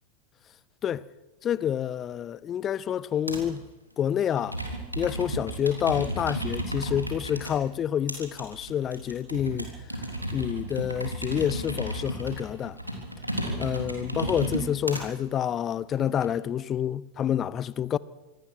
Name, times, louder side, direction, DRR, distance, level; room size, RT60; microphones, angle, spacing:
voice 1, 1.4-3.7 4.0-4.6 5.0-9.7 10.0-10.1 10.3-12.8 13.6-18.0, left 9 dB, 25° left, 0.6 m, -28 dB
Computer keyboard, 3.3-3.6 4.3-7.5 8.1-15.0 15.7-16.3, right 1 dB, 90° right, 3.6 m, -33 dB
25.5 x 18.5 x 6.3 m
figure-of-eight pair, 90°, 0 cm